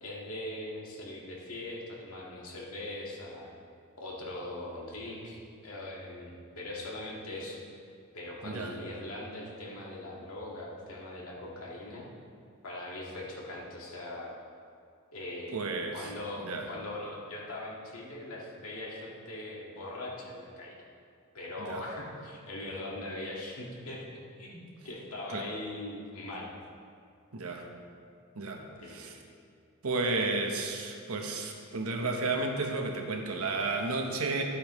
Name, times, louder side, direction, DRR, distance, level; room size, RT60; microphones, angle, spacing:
voice 1, 0.0-3.5 4.0-7.6 8.1-12.1 12.6-14.3 15.1-20.8 21.3-24.1 24.3-26.6 28.8-29.1, left 1 dB, 70° left, -4 dB, 2.0 m, -41 dB
voice 2, 15.5-16.1 16.4-16.7 21.7-21.8 25.3-25.5 27.3-27.7 28.3-29.2 29.8-34.4, right 3 dB, 75° right, 2 dB, 1.1 m, -32 dB
12.5 x 8.5 x 3.2 m, 2.4 s
head